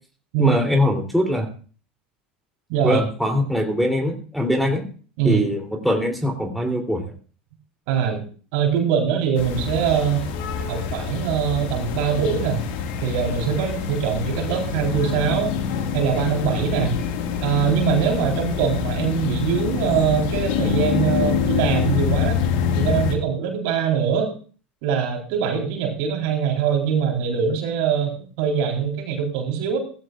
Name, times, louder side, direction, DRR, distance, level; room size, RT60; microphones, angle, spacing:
voice 1, 0.4-1.5 2.8-4.9 5.2-7.1, left 1 dB, ahead, 4 dB, 3.2 m, -22 dB
voice 2, 2.7-3.0 5.2-5.4 7.9-8.2 8.5-10.2 10.7-12.6 13.0-15.5 15.9-16.9 17.4-22.4 22.7-24.3 24.8-29.8, right 7 dB, 60° right, 2 dB, 3.9 m, -22 dB
sound 1, 9.4-23.2, left 7 dB, 60° left, 2.0 m, -25 dB
17.5 x 14.5 x 2.5 m, 0.40 s
hypercardioid pair, 80°, 6 cm